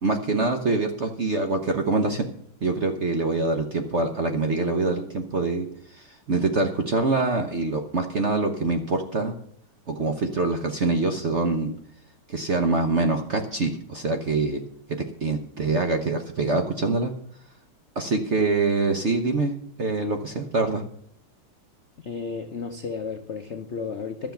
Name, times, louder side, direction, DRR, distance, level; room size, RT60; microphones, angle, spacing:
voice 1, 0.0-2.3 2.6-9.3 9.9-11.7 12.3-14.6 14.9-17.1 17.9-20.8, right 3 dB, 50° right, 5 dB, 0.8 m, -25 dB
voice 2, 22.0-24.3, left 5 dB, 85° left, 6 dB, 0.6 m, -33 dB
12.5 x 7.2 x 6.9 m, 0.65 s
omnidirectional pair, 2.4 m